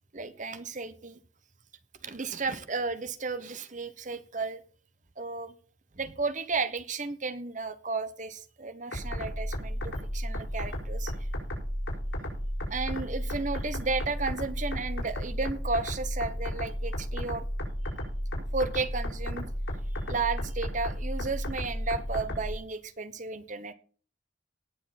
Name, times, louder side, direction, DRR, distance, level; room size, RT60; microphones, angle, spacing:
voice 1, 0.1-1.2 2.0-4.6 5.2-5.5 5.9-11.1 12.7-17.5 18.5-19.5 20.1-23.7, right 4 dB, 40° right, 12 dB, 1.1 m, -33 dB
sound 1, 8.9-22.5, equal, 85° left, 5.6 m, -33 dB
18.5 x 6.9 x 4.2 m, 0.41 s
head